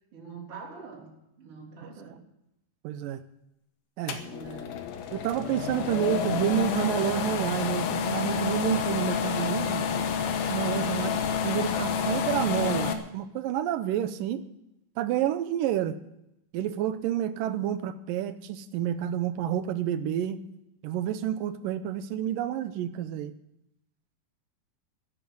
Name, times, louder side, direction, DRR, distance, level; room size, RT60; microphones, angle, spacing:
voice 1, 0.1-2.2 4.1-4.9 5.7-6.0 10.8-11.3, right 5 dB, 35° right, -3 dB, 4.3 m, -44 dB
voice 2, 2.8-3.2 4.0-4.2 5.1-9.9 10.5-11.1 11.4-14.4 15.0-16.0 16.5-20.4 20.8-23.3, right 11 dB, 75° right, 11 dB, 2.2 m, -29 dB
sound 1, 4.1-12.9, left 7 dB, 75° left, 2.9 m, -29 dB
13.5 x 10.5 x 7.9 m, 0.84 s
omnidirectional pair, 4.4 m